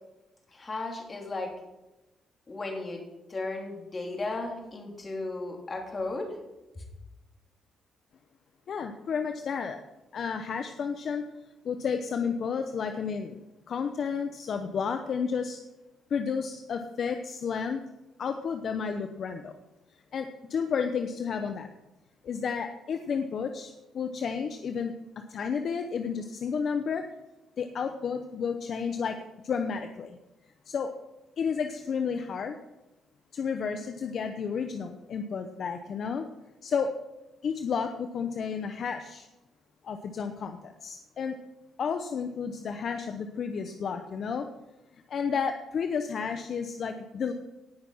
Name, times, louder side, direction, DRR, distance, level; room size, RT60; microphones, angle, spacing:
voice 1, 0.5-1.5 2.5-3.0 3.3-6.4 6.7-6.8, left 2 dB, 30° left, 1 dB, 3.2 m, -35 dB
voice 2, 8.7-9.8 10.1-11.3 11.6-15.6 16.1-17.9 18.2-19.5 20.1-21.7 22.2-24.9 25.3-27.1 27.6-30.2 30.7-30.9 31.4-32.6 33.3-36.3 36.6-36.9 37.4-39.3 39.8-41.4 41.8-44.5 44.9-47.3, left 6 dB, 55° left, 7 dB, 0.8 m, -31 dB
17.5 x 6.0 x 5.6 m, 1.0 s
cardioid pair, 90°, 0 cm